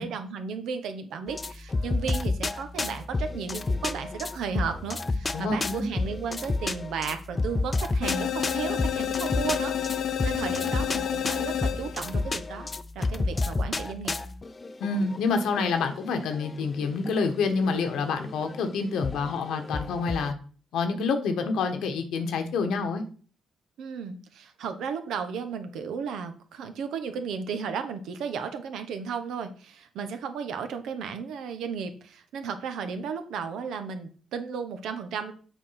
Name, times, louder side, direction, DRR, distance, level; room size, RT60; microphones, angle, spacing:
voice 1, 0.0-14.1 23.8-35.3, right 6 dB, 85° right, 8 dB, 1.1 m, -34 dB
sound 1, 1.3-20.3, left 3 dB, 30° left, 0.6 m, -31 dB
voice 2, 5.3-5.9 14.8-20.3 20.7-23.0, left 4 dB, 90° left, 7 dB, 1.4 m, -27 dB
sound 2, 8.0-12.2, left 9 dB, 75° left, 0.7 m, -30 dB
7.5 x 4.5 x 5.8 m, 0.40 s
cardioid pair, 100°, 0 cm